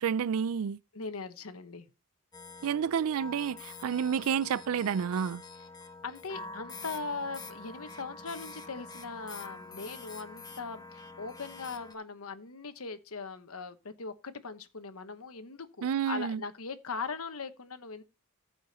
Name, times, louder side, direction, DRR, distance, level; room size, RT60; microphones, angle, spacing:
voice 1, 0.0-0.8 2.6-5.4 15.8-16.4, right 7 dB, 65° right, 0.4 m, -30 dB
voice 2, 0.9-1.9 6.0-18.0, left 4 dB, 70° left, 1.1 m, -40 dB
sound 1, 2.3-11.9, left 3 dB, 20° left, 0.9 m, -46 dB
14.0 x 5.1 x 4.1 m
head